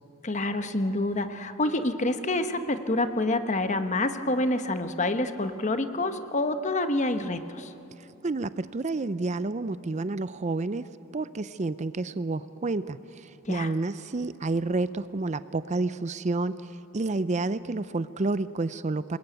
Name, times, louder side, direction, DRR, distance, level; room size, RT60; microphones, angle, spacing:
voice 1, 0.2-7.7 13.4-13.7, left 2 dB, 35° left, 9 dB, 1.1 m, -27 dB
voice 2, 8.0-10.9 11.1-19.2, right 3 dB, 35° right, 14 dB, 0.5 m, -30 dB
27.0 x 21.0 x 9.2 m, 2.9 s
head